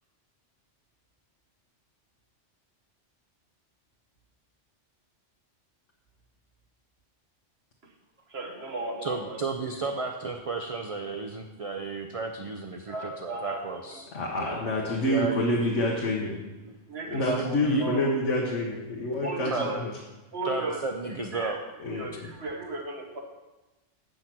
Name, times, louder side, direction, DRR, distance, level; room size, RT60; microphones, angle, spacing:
voice 1, 8.3-9.4 12.9-14.0 14.4-14.8 16.9-18.1 19.2-19.7 20.3-20.8 21.3-21.6 21.9-23.2, right 2 dB, 60° right, 2 dB, 1.5 m, -35 dB
voice 2, 9.0-14.1 14.9-15.9 16.3-16.8 17.1-17.8 19.5-19.8 20.4-21.6, right 4 dB, 40° right, 4 dB, 0.6 m, -33 dB
voice 3, 14.1-16.3 17.1-19.9 21.8-22.1, left 1 dB, 75° left, -1 dB, 1.4 m, -27 dB
8.6 x 6.4 x 6.0 m, 1.1 s
omnidirectional pair, 1.2 m